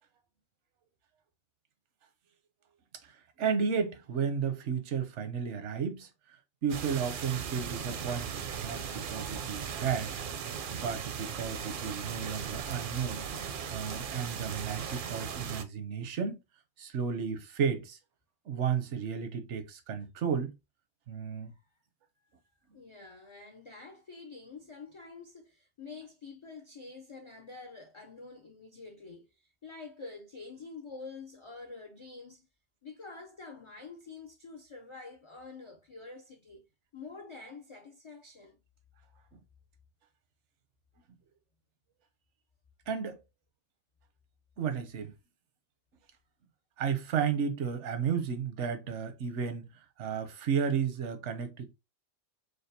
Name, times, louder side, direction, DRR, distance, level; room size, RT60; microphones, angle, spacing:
voice 1, 3.0-6.1 6.6-10.1 10.7-13.3 13.7-16.4 16.8-18.0 18.5-20.5 21.1-21.5 39.3-39.4 42.9-43.2 44.6-45.1 46.8-49.6 50.0-51.7, right 7 dB, 85° right, 1.0 m, -33 dB
sound 1, 6.7-15.6, right 7 dB, 60° right, 0.6 m, -38 dB
voice 2, 22.7-32.5 32.8-36.7 36.9-38.6, left 4 dB, 55° left, 0.3 m, -47 dB
5.0 x 2.3 x 2.6 m
omnidirectional pair, 1.2 m